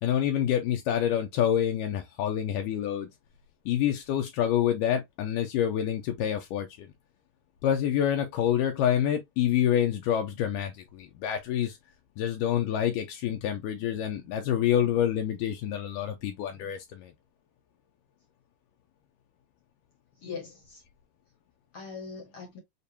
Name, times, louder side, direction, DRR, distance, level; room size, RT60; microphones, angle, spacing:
voice 1, 0.0-3.1 3.7-6.9 7.6-11.8 12.2-17.1, left 10 dB, 80° left, 1.9 m, -27 dB
voice 2, 16.0-16.7 20.2-20.8 21.7-22.6, left 5 dB, 65° left, 1.3 m, -44 dB
6.8 x 2.5 x 2.7 m
omnidirectional pair, 4.5 m